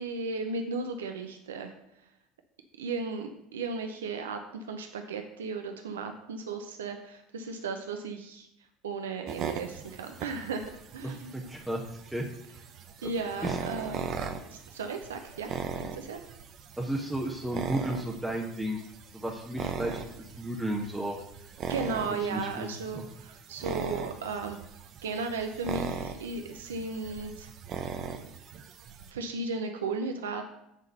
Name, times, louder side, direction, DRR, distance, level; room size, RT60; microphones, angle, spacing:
voice 1, 0.0-1.7 2.8-8.5 8.8-11.3 13.0-14.1 14.5-15.6 15.9-16.2 21.7-24.6 25.0-27.5 29.1-30.5, right 4 dB, 80° right, 5 dB, 0.6 m, -35 dB
sound 1, 9.3-29.1, right 6 dB, 50° right, 0.8 m, -39 dB
voice 2, 11.0-11.8 12.1-12.2 13.0-13.1 13.4-13.6 16.8-18.8 19.1-21.2 22.3-22.7 22.9-23.1, right 1 dB, 5° right, -1 dB, 1.2 m, -33 dB
8.1 x 3.8 x 6.7 m, 0.79 s
hypercardioid pair, 70°, 0 cm